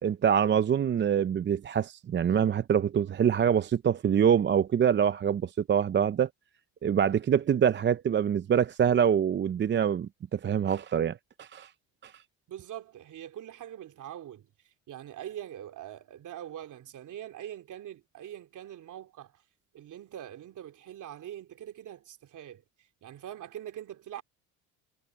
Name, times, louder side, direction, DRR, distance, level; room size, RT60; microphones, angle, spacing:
voice 1, 0.0-6.3 6.8-11.7 12.0-12.1, right 8 dB, 30° right, 0.6 m, -25 dB
voice 2, 12.5-19.4 19.7-24.2, right 11 dB, 50° right, 2.7 m, -43 dB
supercardioid pair, 95°, 38 cm